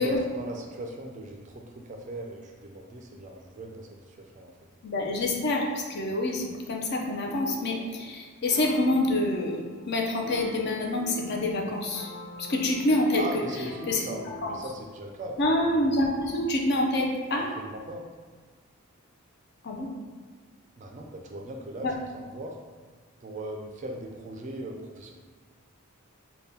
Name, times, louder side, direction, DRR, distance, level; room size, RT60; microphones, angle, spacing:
voice 1, 0.0-4.5 13.1-15.6 17.4-18.0 20.8-22.6 23.2-25.1, right 1 dB, 35° right, 1 dB, 0.3 m, -39 dB
voice 2, 4.8-12.1 12.4-13.2 13.9-14.0 14.4-14.5 15.4-17.5 19.6-19.9 21.8-21.9, left 1 dB, 45° left, 0 dB, 0.5 m, -27 dB
sound 1, 7.2-7.9 8.5-14.7, equal, 20° left, 0.8 m, -45 dB
3.6 x 2.2 x 4.1 m, 1.5 s
head